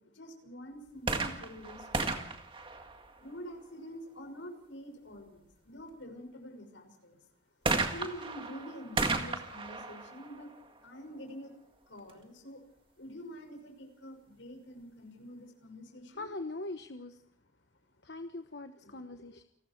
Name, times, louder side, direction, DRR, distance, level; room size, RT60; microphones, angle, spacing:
voice 1, 0.0-2.4 3.2-7.3 7.9-10.5 10.8-11.5 11.9-12.6 13.0-16.3 18.8-19.0, equal, 80° left, 5 dB, 6.1 m, -47 dB
sound 1, 1.0-3.6 7.7-11.3 12.1-12.2, right 3 dB, 25° right, 2.0 m, -35 dB
voice 2, 16.1-17.2 18.0-19.4, left 2 dB, 60° left, 8 dB, 1.1 m, -41 dB
29.0 x 19.5 x 4.6 m, 0.72 s
head